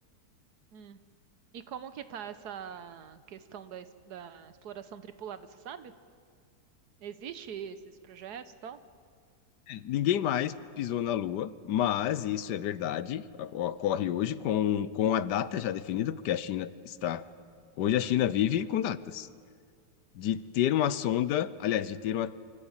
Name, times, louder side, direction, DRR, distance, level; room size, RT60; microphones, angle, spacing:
voice 1, 1.5-5.9 7.0-8.8, right 8 dB, 75° right, 12 dB, 1.5 m, -43 dB
voice 2, 9.7-17.2 17.8-19.3 20.2-22.3, left 11 dB, 85° left, 16 dB, 1.3 m, -29 dB
25.0 x 14.5 x 8.9 m, 2.1 s
omnidirectional pair, 1.8 m